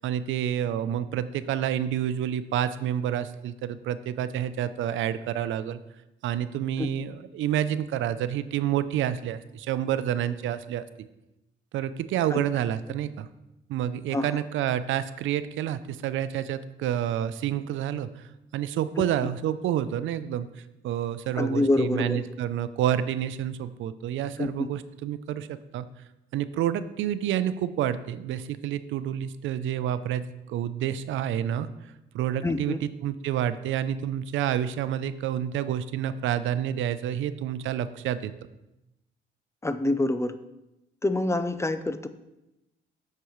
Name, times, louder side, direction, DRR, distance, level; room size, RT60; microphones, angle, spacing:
voice 1, 0.0-5.8 6.2-10.8 11.7-13.3 13.7-18.2 18.5-20.5 20.8-25.9 26.3-31.7 32.1-38.3, right 10 dB, 75° right, 13 dB, 0.5 m, -29 dB
voice 2, 21.4-22.2 24.4-24.7 32.4-32.8 39.6-40.3 41.0-42.1, left 2 dB, 15° left, 11 dB, 0.5 m, -26 dB
8.2 x 6.7 x 3.1 m, 0.92 s
cardioid pair, 90°, 20 cm